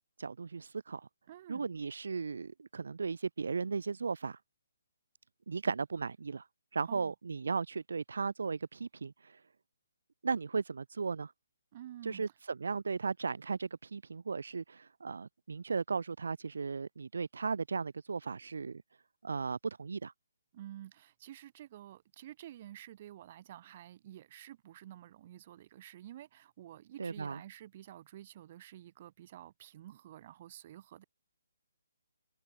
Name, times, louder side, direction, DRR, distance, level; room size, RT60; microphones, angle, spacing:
voice 1, 0.2-1.1 1.5-4.4 5.5-6.5 6.7-9.4 10.2-11.3 12.0-18.8 19.2-20.1 27.0-27.4, right 5 dB, 70° right, 2.6 m, -36 dB
voice 2, 1.3-1.7 6.9-7.1 11.7-12.2 20.5-31.0, right 12 dB, 25° right, 5.0 m, -50 dB
hypercardioid pair, 175°, 0 cm